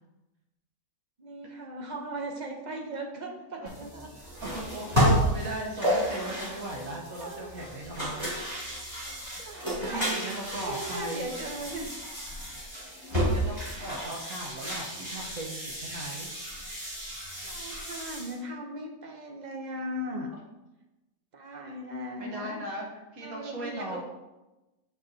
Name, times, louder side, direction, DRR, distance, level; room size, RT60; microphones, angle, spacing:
voice 1, 1.2-4.1 7.1-7.5 9.4-10.2 10.7-12.0 12.9-13.0 17.4-20.3 21.3-22.7 23.2-24.0, right 1 dB, 40° right, 2 dB, 0.8 m, -38 dB
sound 1, 3.7-18.4, equal, 20° right, 2.4 m, -32 dB
voice 2, 4.4-8.3 9.4-9.6 9.9-11.3 13.3-16.3 20.3-20.4 21.6-24.0, right 1 dB, 70° right, -1 dB, 1.5 m, -38 dB
7.2 x 6.2 x 2.7 m, 1.0 s
omnidirectional pair, 1.5 m